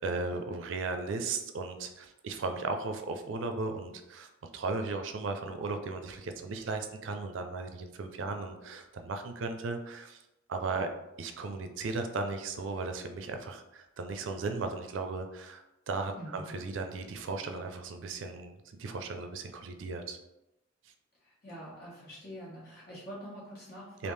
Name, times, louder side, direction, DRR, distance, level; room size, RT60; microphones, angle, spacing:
voice 1, 0.0-10.2 10.5-10.9 11.2-20.2 24.0-24.1, right 3 dB, 80° right, 6 dB, 0.4 m, -36 dB
voice 2, 16.1-16.5 21.2-24.1, equal, 55° left, -6 dB, 1.5 m, -45 dB
3.4 x 2.4 x 3.2 m, 0.94 s
head